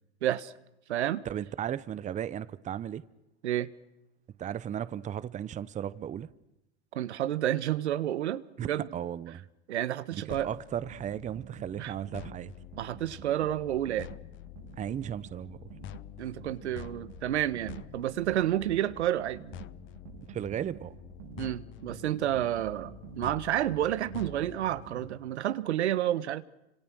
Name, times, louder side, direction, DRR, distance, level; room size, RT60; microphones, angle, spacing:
voice 1, 0.2-0.5 0.9-1.2 3.4-3.7 6.9-8.9 9.7-10.5 11.8-11.9 12.8-14.1 16.2-19.4 21.4-26.4, right 12 dB, 85° right, 1.5 m, -30 dB
voice 2, 1.2-3.0 4.4-6.3 8.6-9.4 10.1-12.5 14.8-15.6 20.3-21.0, right 10 dB, 20° right, 0.9 m, -35 dB
sound 1, 10.3-25.1, left 14 dB, 35° left, 1.0 m, -48 dB
sound 2, 10.9-25.6, right 12 dB, 55° right, 2.7 m, -50 dB
30.0 x 26.5 x 6.3 m
supercardioid pair, 120°, 33 cm